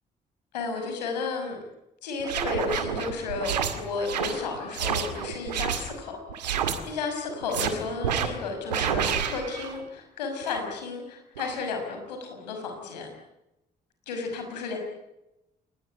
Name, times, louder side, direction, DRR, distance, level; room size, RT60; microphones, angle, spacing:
voice 1, 0.5-1.6 2.0-6.2 6.9-13.1 14.1-14.8, left 4 dB, 85° left, 4 dB, 5.9 m, -33 dB
sound 1, 2.2-5.9 6.3-6.8 7.3-7.7 8.0-8.3 8.7-9.8 10.4-10.6 11.4-11.6, right 8 dB, 90° right, 2.1 m, -29 dB
28.5 x 19.5 x 10.0 m, 0.94 s
hypercardioid pair, 45°, 21 cm